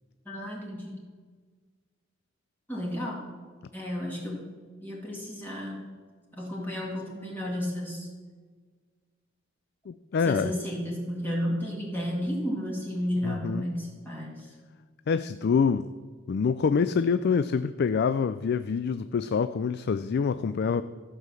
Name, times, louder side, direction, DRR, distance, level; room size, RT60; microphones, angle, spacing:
voice 1, 0.3-1.0 2.7-3.2 3.7-4.4 4.8-5.8 6.3-8.1 10.2-14.5, equal, 10° left, -3 dB, 2.0 m, -32 dB
voice 2, 9.9-10.5 13.2-13.6 15.1-15.9 16.3-20.8, left 5 dB, 55° left, 12 dB, 0.4 m, -26 dB
14.0 x 5.8 x 7.5 m, 1.5 s
head